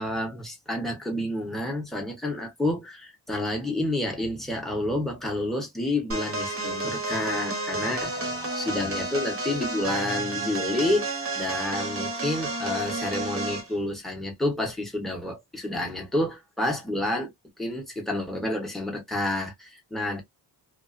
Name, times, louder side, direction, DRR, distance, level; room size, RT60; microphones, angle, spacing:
voice 1, 0.0-17.3 17.6-20.2, left 1 dB, ahead, 0.8 m, -29 dB
sound 1, 6.1-13.7, right 2 dB, 30° right, 0.8 m, -31 dB
3.0 x 2.3 x 2.4 m
wide cardioid pair, 170°, 43 cm